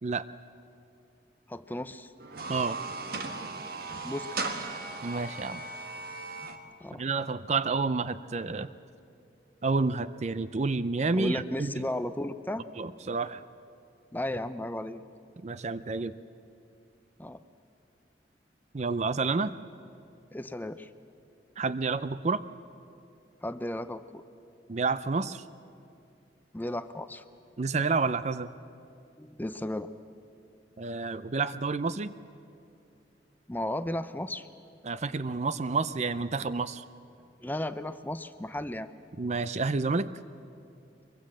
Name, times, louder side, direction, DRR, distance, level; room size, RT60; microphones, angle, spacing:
voice 1, 1.5-2.1 4.0-4.7 6.8-7.0 11.1-12.6 14.1-15.0 17.2-17.4 20.3-20.9 23.4-24.2 26.5-27.2 29.2-29.9 33.5-34.5 37.4-38.9, left 1 dB, 10° left, 11 dB, 0.6 m, -34 dB
sound 1, 2.2-6.6, right 3 dB, 55° right, 1.5 m, -37 dB
voice 2, 5.0-5.6 7.0-8.7 9.6-11.9 12.8-13.4 15.4-16.1 18.7-19.5 21.6-22.4 24.7-25.4 27.6-28.5 30.8-32.1 34.8-36.8 39.2-40.1, right 4 dB, 40° right, 14 dB, 0.5 m, -29 dB
23.0 x 23.0 x 7.7 m, 2.6 s
head